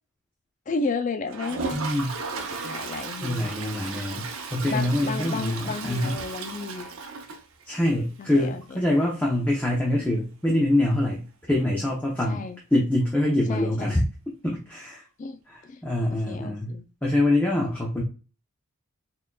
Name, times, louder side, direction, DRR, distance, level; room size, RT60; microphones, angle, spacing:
voice 1, 0.7-1.8 2.6-3.5 4.7-6.9 8.2-8.8 12.3-12.6 13.5-14.0 15.2-15.8 16.1-16.8, left 4 dB, 35° left, 0.3 m, -33 dB
Toilet flush, 1.3-8.0 8.3-8.4 8.6-8.7 9.0-9.1 11.6-11.7 13.0-13.1, right 4 dB, 65° right, 0.7 m, -35 dB
voice 2, 1.7-2.1 2.4-2.7 3.2-6.2 7.7-12.4 12.7-14.0 14.4-15.0 15.5-18.0, left 1 dB, 10° left, 0.8 m, -25 dB
4.2 x 3.8 x 2.3 m
head